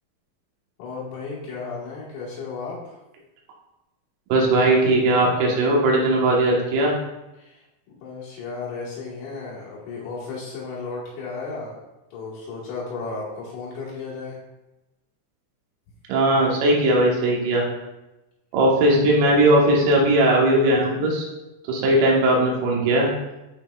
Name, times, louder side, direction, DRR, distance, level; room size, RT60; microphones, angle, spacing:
voice 1, 0.8-3.0 7.4-11.8 12.1-14.4, left 4 dB, 75° left, -7 dB, 3.9 m, -34 dB
voice 2, 4.3-6.9 16.1-17.6 18.5-21.3 21.7-23.1, right 1 dB, 85° right, -2 dB, 4.0 m, -18 dB
11.0 x 4.2 x 2.3 m, 1.0 s
omnidirectional pair, 6.0 m